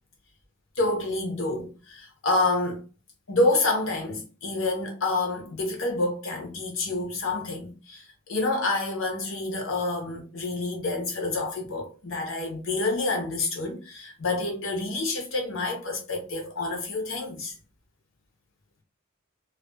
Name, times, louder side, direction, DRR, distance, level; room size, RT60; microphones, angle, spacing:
voice 1, 0.8-2.8 3.3-17.5, left 2 dB, 70° left, 0.8 m, -28 dB
2.4 x 2.3 x 2.3 m
head